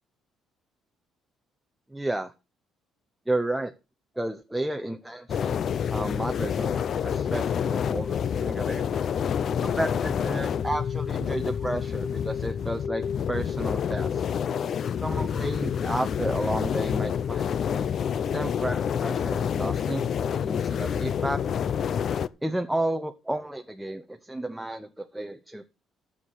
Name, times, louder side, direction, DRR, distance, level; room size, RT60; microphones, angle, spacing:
voice 1, 1.9-2.3 3.3-3.7 4.2-5.6 5.9-8.9 9.6-14.3 15.0-17.8 18.3-21.4 22.4-25.6, right 1 dB, 5° right, 7 dB, 0.7 m, -32 dB
sound 1, 5.3-22.3, left 8 dB, 45° left, 0.5 m, -28 dB
12.5 x 7.4 x 6.3 m, 0.31 s
cardioid pair, 145°, 0 cm